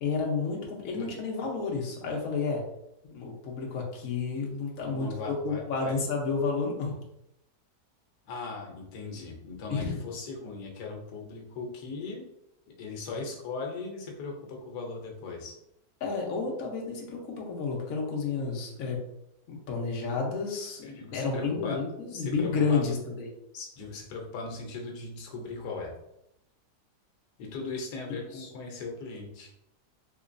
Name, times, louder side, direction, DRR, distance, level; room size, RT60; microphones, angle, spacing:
voice 1, 0.0-2.6 3.1-6.9 9.7-10.0 16.0-19.0 19.5-23.3 28.3-28.5, left 4 dB, 65° left, -1 dB, 1.2 m, -31 dB
voice 2, 4.9-6.0 8.3-12.2 12.8-15.5 20.8-21.8 22.1-22.9 23.5-25.9 27.4-29.5, left 3 dB, 90° left, 1 dB, 1.3 m, -38 dB
3.7 x 3.0 x 2.5 m, 0.83 s
omnidirectional pair, 1.7 m